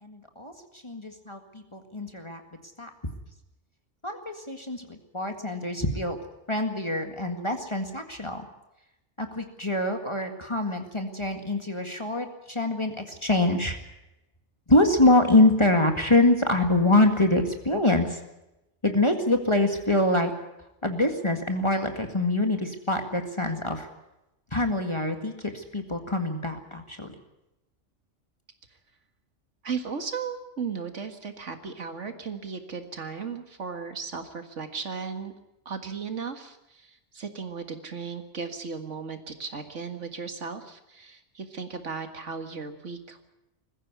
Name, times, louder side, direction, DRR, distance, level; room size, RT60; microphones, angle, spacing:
voice 1, 0.0-2.4 2.8-2.9 4.0-6.2 6.5-8.5 9.2-13.8 14.7-18.2 18.8-20.3 20.8-23.9 24.5-27.2, left 2 dB, 25° left, 5 dB, 1.9 m, -25 dB
voice 2, 29.6-35.3 35.7-43.2, right 5 dB, 70° right, 7 dB, 2.1 m, -36 dB
21.0 x 15.0 x 9.5 m, 0.93 s
omnidirectional pair, 1.3 m